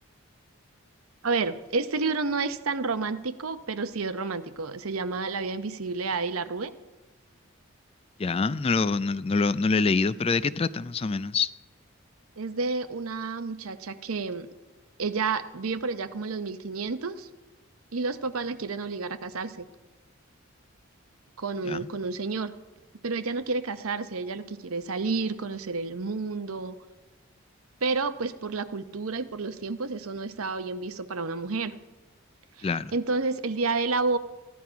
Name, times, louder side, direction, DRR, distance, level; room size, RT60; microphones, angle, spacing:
voice 1, 1.2-6.7 12.4-14.5 15.0-17.3 17.9-19.6 21.4-22.5 23.0-26.7 27.8-31.7 32.6-34.2, right 4 dB, 85° right, 11 dB, 0.8 m, -30 dB
voice 2, 8.2-11.5 21.6-21.8 32.6-32.9, left 4 dB, 25° left, 16 dB, 0.3 m, -25 dB
15.5 x 11.0 x 5.7 m, 1.2 s
head